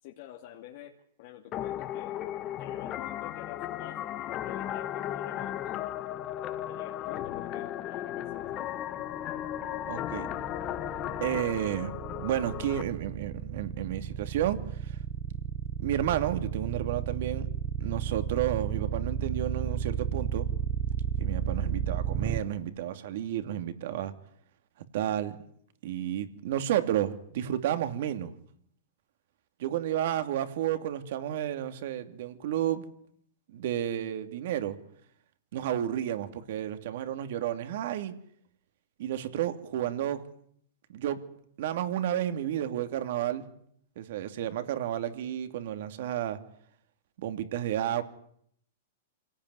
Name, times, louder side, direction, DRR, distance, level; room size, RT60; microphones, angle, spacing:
voice 1, 0.0-2.2 2.5-6.0 6.7-8.4, left 12 dB, 50° left, 2 dB, 2.5 m, -48 dB
sound 1, 1.5-12.8, left 12 dB, 30° left, 1.5 m, -35 dB
sound 2, 9.1-22.4, right 9 dB, 20° right, 1.2 m, -32 dB
voice 2, 9.9-10.3 11.2-15.0 15.8-17.5 17.8-20.5 21.2-24.1 24.9-25.4 25.8-28.3 29.6-32.9 33.5-34.8 35.5-38.1 39.0-40.2 40.9-41.2 41.6-43.5 44.0-46.4 47.2-48.0, right 11 dB, 60° right, 9 dB, 2.7 m, -31 dB
26.5 x 18.0 x 9.8 m, 0.68 s
hypercardioid pair, 150°, 0 cm